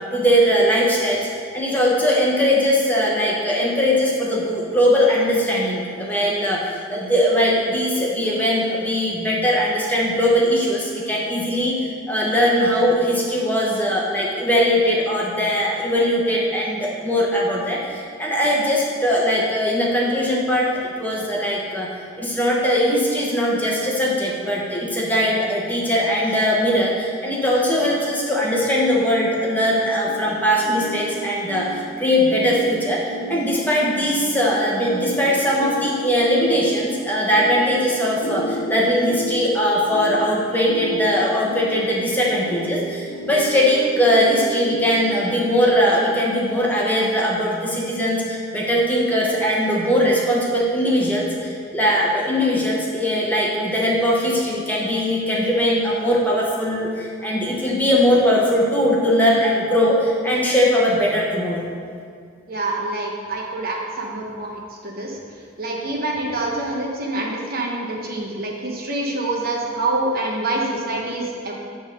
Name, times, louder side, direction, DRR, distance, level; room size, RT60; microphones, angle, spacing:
voice 1, 0.1-21.9 22.2-61.6, equal, 10° left, -4 dB, 1.0 m, -20 dB
sound 1, 30.1-45.4, right 1 dB, 50° left, 1.2 m, -32 dB
voice 2, 62.5-65.2 65.6-71.5, right 2 dB, 45° right, -1 dB, 1.0 m, -26 dB
8.8 x 3.7 x 6.5 m, 2.2 s
head